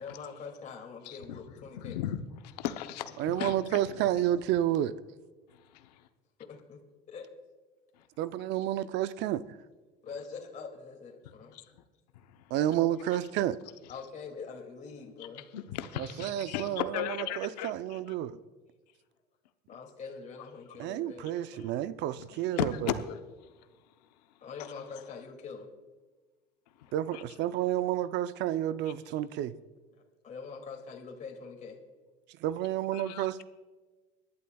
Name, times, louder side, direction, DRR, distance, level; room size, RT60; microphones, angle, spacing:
voice 1, 0.0-2.0 6.4-6.8 7.1-7.3 10.0-11.5 13.9-15.5 19.7-21.6 22.3-22.4 24.4-25.7 27.8-28.1 30.2-31.8, left 5 dB, 40° left, 0 dB, 2.4 m, -44 dB
voice 2, 1.0-4.2 5.5-6.1 7.9-8.1 11.2-11.8 12.1-12.7 13.1-13.2 13.8-14.1 15.2-18.1 19.7-19.8 21.2-21.7 22.2-25.1 26.7-27.4 27.6-27.7 28.8-28.9 32.9-33.3, left 10 dB, 90° left, 8 dB, 0.8 m, -39 dB
voice 3, 3.2-4.9 8.2-9.4 12.5-13.6 16.2-16.8 17.4-18.4 20.8-22.9 26.9-29.5 32.4-33.4, right 12 dB, 60° right, 14 dB, 0.6 m, -30 dB
24.5 x 11.5 x 2.3 m, 1.3 s
supercardioid pair, 95°, 20 cm